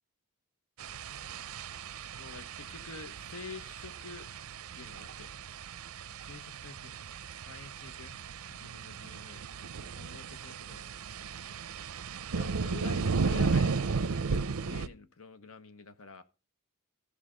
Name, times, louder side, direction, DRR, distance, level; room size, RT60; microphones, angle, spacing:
sound 1, 0.8-14.9, right 4 dB, 90° right, 0.6 m, -35 dB
voice 1, 2.2-4.3 4.7-5.3 6.2-8.2 8.5-10.9 12.3-16.2, left 5 dB, 75° left, 1.1 m, -48 dB
15.0 x 5.0 x 5.0 m
head